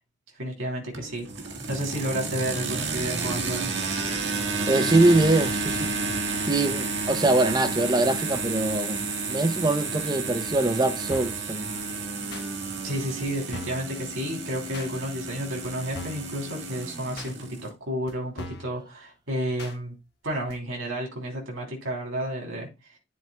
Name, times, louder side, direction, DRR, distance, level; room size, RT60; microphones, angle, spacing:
voice 1, 0.4-1.3 1.7-3.7 12.8-19.9 20.2-22.7, equal, 85° right, 3.3 m, -31 dB
sound 1, 0.9-17.7, right 3 dB, 60° right, 1.9 m, -31 dB
voice 2, 4.7-5.9 6.5-11.7, right 2 dB, 20° right, 0.6 m, -23 dB
sound 2, 11.1-11.4 12.3-12.5 13.2-13.3 13.5-13.9 14.7-14.9 15.6-15.7 15.9-16.3 17.2-17.3 18.1-18.2 18.4-18.7 19.6-19.8 20.5-20.6, left 2 dB, 50° left, 1.3 m, -39 dB
11.0 x 7.4 x 2.3 m
head